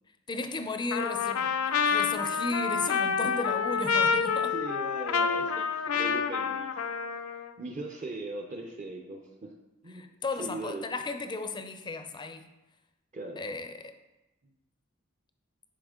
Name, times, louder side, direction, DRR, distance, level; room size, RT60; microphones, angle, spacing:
voice 1, 0.3-1.6 1.9-4.5 9.9-12.5 13.4-14.0, left 3 dB, 20° left, 0.4 m, -34 dB
Trumpet, 0.9-7.5, left 6 dB, 80° left, 0.4 m, -28 dB
voice 2, 4.5-6.7 7.6-9.5 9.8-10.1 10.3-10.8 13.1-13.4 14.4-14.5, right 2 dB, 35° right, 0.6 m, -39 dB
9.8 x 4.2 x 3.7 m
head